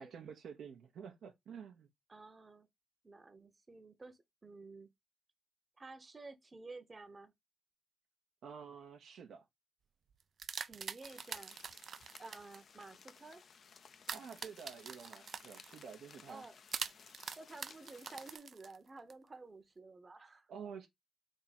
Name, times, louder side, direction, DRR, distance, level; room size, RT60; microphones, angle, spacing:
voice 1, 0.0-1.9 8.4-9.4 14.1-16.4 20.5-20.9, right 6 dB, 80° right, 0.7 m, -50 dB
voice 2, 2.1-2.7 3.0-4.9 5.8-7.3 10.6-11.6 12.2-13.4 16.3-16.6 17.4-20.5, right 3 dB, 35° right, 0.8 m, -52 dB
sound 1, 10.1-12.6 14.0-15.9 16.7-19.1, right 6 dB, 65° right, 0.3 m, -44 dB
sound 2, 11.0-18.4, left 6 dB, 65° left, 0.5 m, -59 dB
3.6 x 2.9 x 4.1 m
cardioid pair, 60°, 0 cm